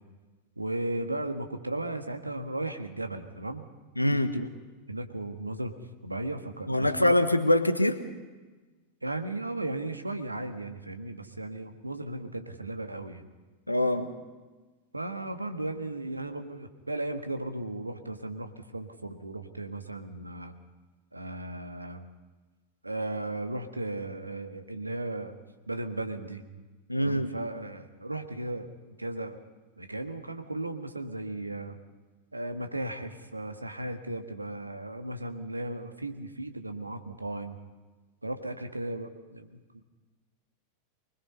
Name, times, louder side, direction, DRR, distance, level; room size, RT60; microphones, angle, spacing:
voice 1, 0.6-3.6 4.1-4.5 4.9-5.8 6.0-7.1 9.0-13.2 14.9-20.5 21.1-22.0 22.8-25.4 25.7-26.4 27.0-28.7 29.0-29.4 29.8-31.8 32.3-37.6 38.2-39.8, right 2 dB, 85° right, 7 dB, 1.6 m, -36 dB
voice 2, 4.0-4.3 6.7-8.0 13.7-14.1 26.9-27.3, left 1 dB, 85° left, 10 dB, 1.3 m, -24 dB
24.0 x 21.0 x 5.4 m, 1.3 s
figure-of-eight pair, 90°, 0 cm